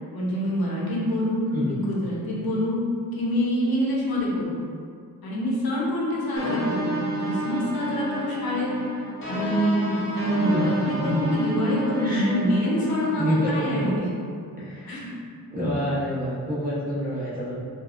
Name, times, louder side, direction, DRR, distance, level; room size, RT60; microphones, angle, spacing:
voice 1, 0.1-2.8 3.1-4.6 5.2-8.7 9.3-14.3 14.9-15.1, equal, 80° left, -5 dB, 0.7 m, -26 dB
sound 1, 6.4-14.0, right 1 dB, 35° left, 0.6 m, -31 dB
voice 2, 10.9-11.3 12.0-12.3 13.1-13.9 14.6-15.0 15.5-17.5, equal, 25° right, -9 dB, 0.7 m, -27 dB
3.2 x 2.3 x 2.3 m, 2.2 s
wide cardioid pair, 155°, 35 cm